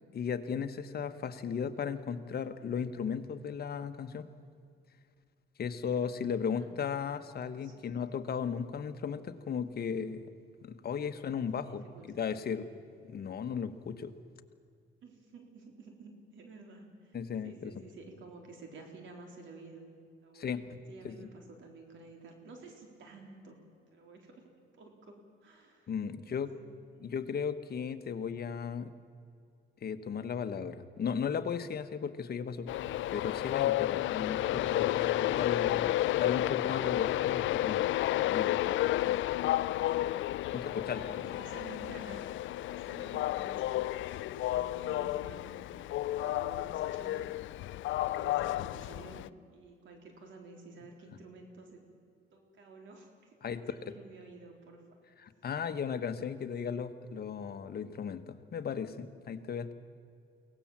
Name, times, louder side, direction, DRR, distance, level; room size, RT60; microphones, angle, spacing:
voice 1, 0.1-4.3 5.6-10.2 10.6-11.8 12.2-12.7 13.1-14.1 17.1-17.7 20.3-20.8 21.0-21.2 25.9-26.5 27.0-28.9 29.8-32.7 33.1-35.9 36.1-37.9 38.3-38.6 39.0-39.1 40.5-41.3 53.4-53.9 55.2-59.7, left 7 dB, 50° left, 9 dB, 1.3 m, -36 dB
voice 2, 5.9-6.7 7.6-8.0 11.6-12.2 15.0-17.2 17.4-19.9 20.2-23.6 23.9-26.7 35.3-35.7 40.4-42.3 42.7-45.4 46.0-47.3 47.9-49.2 49.5-51.8 52.3-54.8, right 3 dB, 75° right, 3 dB, 3.8 m, -52 dB
Train, 32.7-49.3, left 14 dB, 75° left, 0.4 m, -31 dB
23.5 x 17.5 x 7.4 m, 2.3 s
cardioid pair, 90°, 20 cm